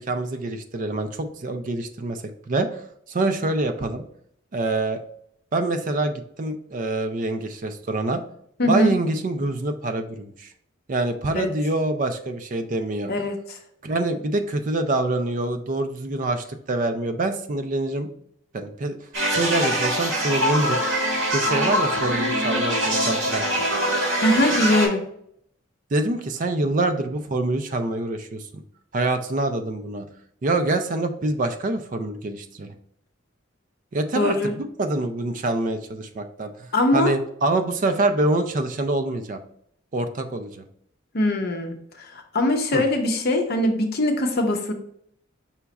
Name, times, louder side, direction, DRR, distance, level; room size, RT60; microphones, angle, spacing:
voice 1, 0.0-2.8 3.1-4.0 4.5-5.0 5.5-8.2 8.7-10.5 10.9-13.1 13.8-18.1 18.5-19.0 19.3-20.8 21.3-23.7 25.9-28.6 28.9-30.0 30.4-32.7 33.9-36.5 36.9-39.4 39.9-40.6 42.7-42.8, right 2 dB, 40° right, 8 dB, 0.4 m, -25 dB
voice 2, 8.6-8.9 11.3-11.5 13.1-13.6 24.2-25.0 34.2-34.6 36.7-37.1 41.1-42.1 42.3-44.7, left 1 dB, 50° left, 4 dB, 0.6 m, -22 dB
sound 1, 19.1-24.9, equal, 70° right, 1.7 m, -23 dB
5.7 x 2.3 x 4.0 m, 0.69 s
head